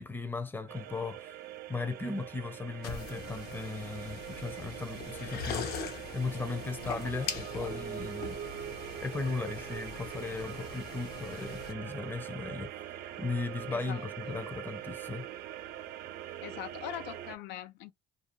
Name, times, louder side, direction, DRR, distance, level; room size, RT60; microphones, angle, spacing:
voice 1, 0.0-1.3 1.7-8.4 8.8-15.3, left 4 dB, 10° left, 0.5 m, -37 dB
sound 1, 0.7-17.4, right 11 dB, 75° right, 0.4 m, -43 dB
sound 2, 2.8-11.7, left 5 dB, 70° left, 0.8 m, -42 dB
voice 2, 13.7-14.4 16.4-17.9, left 11 dB, 90° left, 0.4 m, -42 dB
2.5 x 2.3 x 2.8 m
cardioid pair, 110°, 17 cm